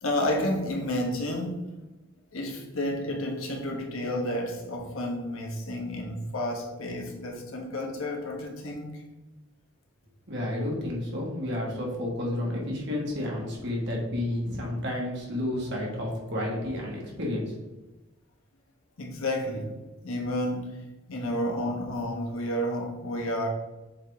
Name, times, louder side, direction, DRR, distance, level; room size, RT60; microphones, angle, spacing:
voice 1, 0.0-1.7 2.3-9.0 19.0-19.7 20.0-20.8 21.1-23.5, left 1 dB, 75° left, 1 dB, 1.2 m, -31 dB
voice 2, 10.3-17.6, left 1 dB, 55° right, -2 dB, 1.7 m, -31 dB
7.2 x 3.8 x 3.5 m, 1.1 s
head